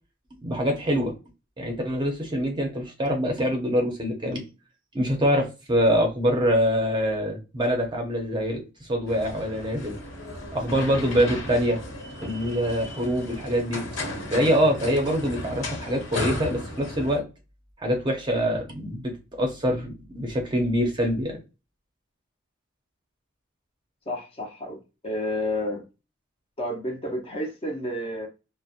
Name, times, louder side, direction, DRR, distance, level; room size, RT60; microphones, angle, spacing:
voice 1, 0.4-1.1 1.6-4.4 4.9-9.9 10.5-11.8 12.2-13.8 14.3-17.2 17.8-21.4, equal, 20° right, 0.6 m, -25 dB
sound 1, 9.1-17.2, left 1 dB, 65° left, 1.3 m, -35 dB
voice 2, 24.1-25.8 26.6-28.3, left 1 dB, 25° left, 0.5 m, -30 dB
2.7 x 2.0 x 2.4 m
head